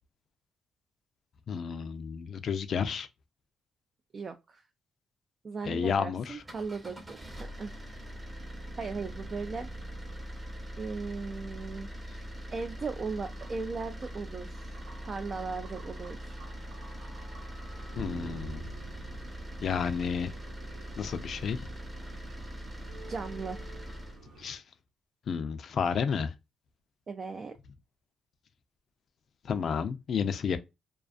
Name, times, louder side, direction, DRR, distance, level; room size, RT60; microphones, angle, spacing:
voice 1, 1.5-3.1 5.6-6.4 18.0-18.7 19.6-20.3 21.0-21.7 24.4-24.6 25.3-26.3 29.4-30.6, left 6 dB, 55° left, 0.4 m, -31 dB
voice 2, 4.1-4.6 5.4-7.7 8.8-9.7 10.8-11.9 12.5-14.8 15.0-16.4 23.1-23.6 27.1-27.5, right 4 dB, 40° right, 0.3 m, -37 dB
sound 1, 6.3-24.2, equal, 20° right, 0.8 m, -42 dB
sound 2, 13.0-24.6, right 4 dB, 80° right, 0.8 m, -50 dB
2.4 x 2.3 x 2.4 m
cardioid pair, 90°, 0 cm